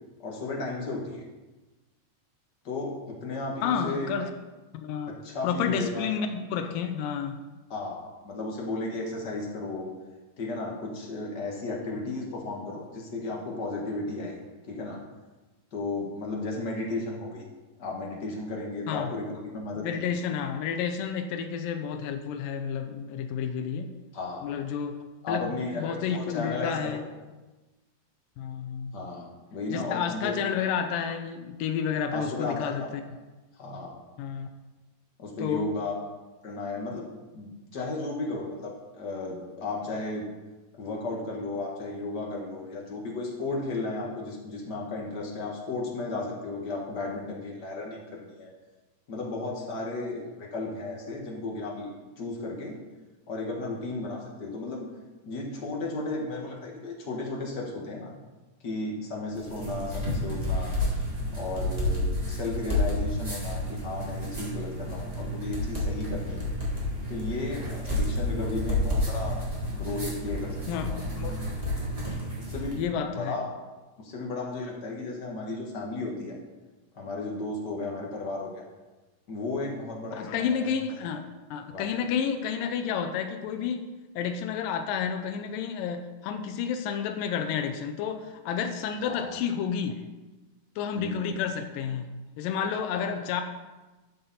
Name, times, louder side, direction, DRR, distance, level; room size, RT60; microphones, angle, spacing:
voice 1, 0.2-1.2 2.6-4.1 5.2-6.1 7.7-9.9 10.4-14.4 14.7-15.0 15.7-17.4 17.8-20.1 24.1-24.4 25.2-27.0 28.9-30.3 32.1-32.9 33.6-34.0 35.2-35.9 36.4-37.0 37.3-40.3 40.8-48.5 49.1-51.9 52.2-52.7 53.3-54.9 55.2-58.1 58.6-60.8 61.3-66.5 67.1-69.4 69.7-71.0 72.5-73.4 74.0-76.4 76.9-78.7 79.3-80.5 81.7-82.0 89.0-89.4 90.9-91.3 93.0-93.1, left 2 dB, 40° left, -1 dB, 1.6 m, -34 dB
voice 2, 3.6-4.3 4.7-5.2 5.4-7.4 18.9-19.1 19.8-23.9 24.4-27.1 28.4-28.9 29.7-33.0 34.2-34.5 35.4-35.7 70.7-70.9 71.2-71.4 72.1-72.2 72.8-73.4 80.2-81.2 81.5-83.9 84.2-90.0 90.8-92.0 92.4-93.4, left 7 dB, 90° left, 7 dB, 2.4 m, -30 dB
sound 1, 59.3-72.8, left 1 dB, 10° right, 2.5 m, -30 dB
12.5 x 6.9 x 4.2 m, 1.2 s
omnidirectional pair, 3.8 m